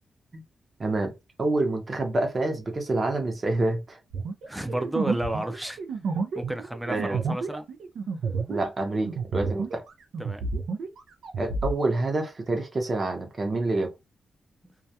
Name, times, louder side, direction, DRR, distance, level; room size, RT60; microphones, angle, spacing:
voice 1, 0.8-4.0 4.6-4.8 6.9-7.2 8.5-9.8 11.4-13.9, right 2 dB, 35° right, 0.7 m, -27 dB
sound 1, 4.1-9.9 10.1-11.7, right 4 dB, 80° right, 0.4 m, -30 dB
voice 2, 4.5-5.8 6.4-7.7 10.2-10.5, right 1 dB, 5° right, 0.4 m, -31 dB
2.3 x 2.1 x 2.7 m
cardioid pair, 110°, 0 cm